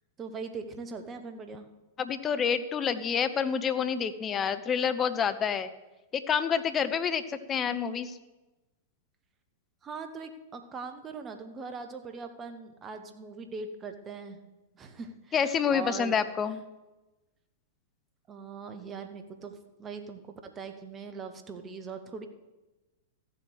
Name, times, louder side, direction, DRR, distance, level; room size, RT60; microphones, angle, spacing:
voice 1, 0.2-1.7 9.8-14.4 14.7-16.2 18.3-22.3, right 4 dB, 25° right, 7 dB, 1.5 m, -41 dB
voice 2, 2.0-5.7 6.1-8.2 15.3-16.6, left 7 dB, 25° left, 11 dB, 0.9 m, -28 dB
14.0 x 7.8 x 6.7 m, 1.1 s
figure-of-eight pair, 100°, 0 cm